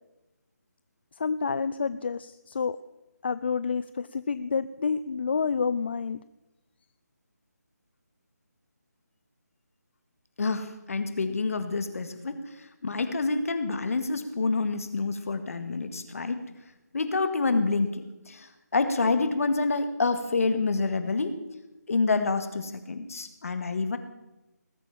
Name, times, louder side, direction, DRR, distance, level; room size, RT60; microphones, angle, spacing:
voice 1, 1.2-2.8 3.2-6.2, left 5 dB, 35° left, 14 dB, 0.4 m, -29 dB
voice 2, 10.4-16.5 16.9-21.4 21.9-24.0, left 3 dB, 55° left, 9 dB, 1.9 m, -28 dB
19.5 x 8.3 x 7.3 m, 0.98 s
figure-of-eight pair, 165°, 9 cm